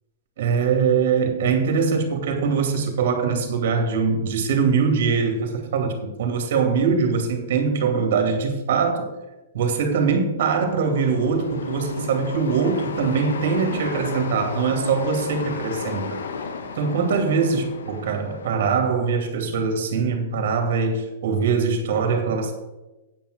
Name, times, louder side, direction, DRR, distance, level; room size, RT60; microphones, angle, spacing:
voice 1, 0.4-9.1 9.5-16.2 16.8-22.5, right 5 dB, 65° right, 4 dB, 2.4 m, -22 dB
sound 1, 10.6-18.5, left 5 dB, 80° left, 1.2 m, -33 dB
8.9 x 5.7 x 8.0 m, 1.0 s
hypercardioid pair, 125°, 0 cm